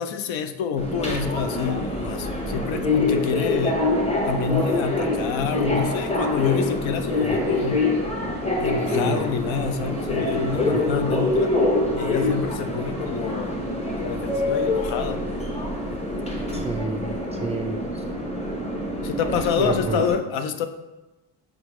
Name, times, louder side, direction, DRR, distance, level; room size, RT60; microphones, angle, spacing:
voice 1, 0.0-3.8 4.2-7.9 8.6-11.6 11.9-13.5 13.9-15.2 19.0-20.7, left 6 dB, 75° left, 8 dB, 0.6 m, -27 dB
Subway metro underground, 0.8-20.1, left 2 dB, 15° left, 0.9 m, -25 dB
voice 2, 8.9-9.3 16.5-17.1 17.4-18.0 19.3-20.0, right 3 dB, 15° right, 2 dB, 0.4 m, -29 dB
5.1 x 3.3 x 3.1 m, 1.1 s
cardioid pair, 90°, 46 cm